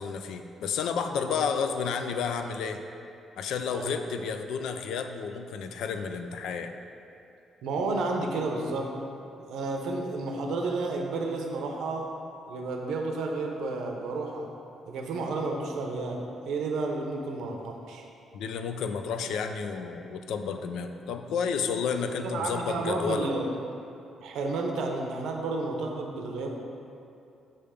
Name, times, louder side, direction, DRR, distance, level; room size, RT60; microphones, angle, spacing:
voice 1, 0.0-2.8 3.4-6.7 18.3-23.3, left 6 dB, 80° left, 7 dB, 0.3 m, -31 dB
voice 2, 7.6-8.9 9.4-12.1 12.5-14.5 14.9-18.0 22.2-23.5 24.2-26.5, right 3 dB, 80° right, 1 dB, 0.7 m, -31 dB
5.6 x 3.4 x 5.0 m, 2.7 s
cardioid pair, 90°, 0 cm